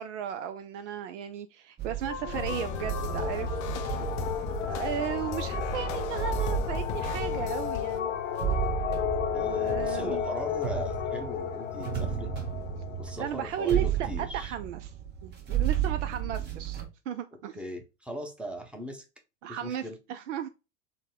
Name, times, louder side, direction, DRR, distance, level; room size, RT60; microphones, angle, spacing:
voice 1, 0.0-3.6 4.6-8.1 9.4-10.2 13.2-14.9 15.2-17.6 19.4-20.5, right 9 dB, 70° right, 0.5 m, -35 dB
sound 1, 1.8-16.9, right 9 dB, 25° right, 1.0 m, -34 dB
sound 2, 2.0-13.9, left 9 dB, 80° left, 0.7 m, -34 dB
sound 3, 2.3-8.0, left 9 dB, 35° left, 0.4 m, -37 dB
voice 2, 9.3-12.3 13.0-14.5 17.5-19.0 19.5-19.9, equal, 5° right, 0.8 m, -39 dB
3.9 x 2.2 x 3.6 m
hypercardioid pair, 90°, 38 cm